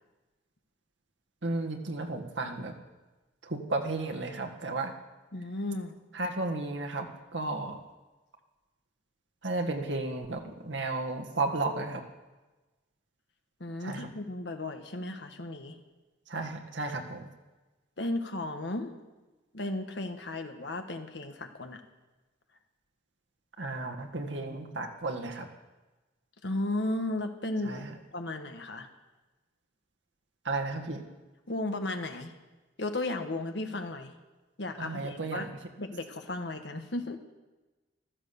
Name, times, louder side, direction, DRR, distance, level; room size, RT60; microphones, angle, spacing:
voice 1, 1.4-2.7 3.4-4.9 6.1-7.1 7.3-7.8 9.4-12.0 13.8-14.1 16.3-17.3 23.6-25.5 27.7-27.9 30.5-31.0 34.8-35.6, right 2 dB, 85° right, 3 dB, 1.8 m, -33 dB
voice 2, 5.3-6.0 13.6-15.8 18.0-18.9 19.5-21.8 26.4-27.9 28.1-28.9 31.5-32.3 32.8-34.1 34.6-35.5 35.8-37.2, left 2 dB, 70° left, 6 dB, 1.5 m, -34 dB
15.5 x 13.0 x 7.0 m, 1.2 s
head